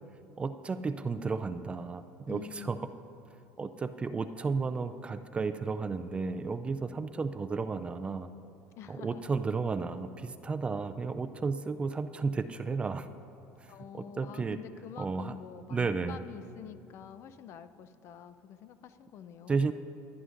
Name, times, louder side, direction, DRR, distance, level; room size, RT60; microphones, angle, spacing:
voice 1, 0.4-2.8 3.6-8.3 8.9-13.1 13.6-14.6 15.0-15.4 15.7-16.2 19.5-19.7, right 4 dB, 20° right, 10 dB, 0.3 m, -33 dB
voice 2, 2.3-2.9 8.8-9.2 13.7-19.6, left 9 dB, 50° left, 12 dB, 0.5 m, -47 dB
22.0 x 9.6 x 2.5 m, 2.6 s
cardioid pair, 135°, 6 cm